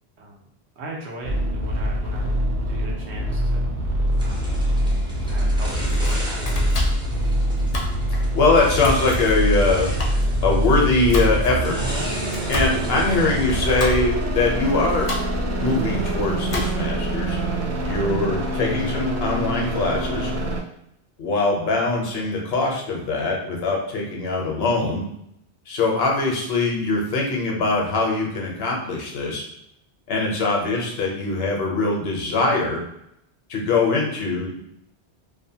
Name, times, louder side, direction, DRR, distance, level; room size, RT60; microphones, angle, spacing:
voice 1, 0.8-2.3 2.7-3.7 4.2-4.5 5.2-6.7, right 2 dB, 85° right, -2 dB, 1.0 m, -38 dB
sound 1, 1.2-20.6, right 1 dB, 55° right, 0.6 m, -24 dB
sound 2, 4.2-14.3, equal, 10° right, 0.3 m, -37 dB
Domestic sounds home sounds, 5.7-17.1, left 1 dB, 50° left, 0.5 m, -32 dB
voice 2, 8.3-9.9 10.4-11.8 12.5-15.1 15.6-17.4 17.8-20.3 21.2-25.0 25.7-29.4 30.1-32.8 33.5-34.6, left 3 dB, 70° left, -1 dB, 0.9 m, -22 dB
2.7 x 2.1 x 2.7 m, 0.76 s
omnidirectional pair, 1.1 m